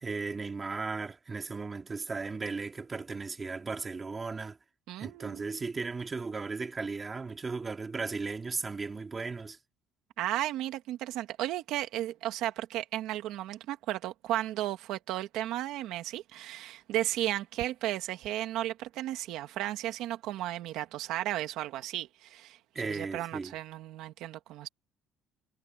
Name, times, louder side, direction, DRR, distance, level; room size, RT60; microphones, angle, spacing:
voice 1, 0.0-4.6 5.0-9.6 22.7-23.6, right 4 dB, 15° right, 2.3 m, -36 dB
voice 2, 4.9-5.4 10.2-24.7, right 14 dB, 65° right, 1.9 m, -34 dB
cardioid pair, 180°, 0 cm